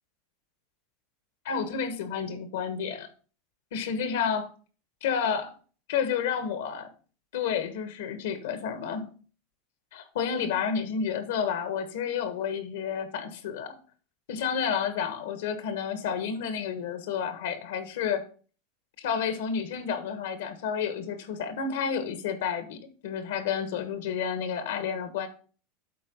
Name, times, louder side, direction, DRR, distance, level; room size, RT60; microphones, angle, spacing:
voice 1, 1.4-3.1 3.7-4.5 5.0-5.5 5.9-6.9 7.3-9.1 9.9-13.8 14.3-18.3 19.0-25.3, left 7 dB, 80° left, 1.3 m, -30 dB
8.5 x 3.8 x 5.3 m
supercardioid pair, 115°, 0 cm